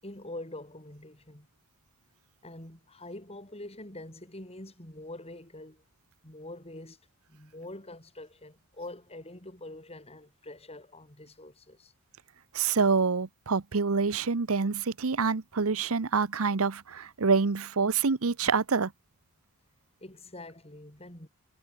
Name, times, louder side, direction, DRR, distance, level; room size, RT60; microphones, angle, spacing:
voice 1, 0.0-1.5 2.4-5.8 6.2-7.0 7.3-11.9 20.0-21.3, left 1 dB, 30° left, 7.8 m, -45 dB
voice 2, 12.5-18.9, right 4 dB, 75° right, 0.9 m, -26 dB
head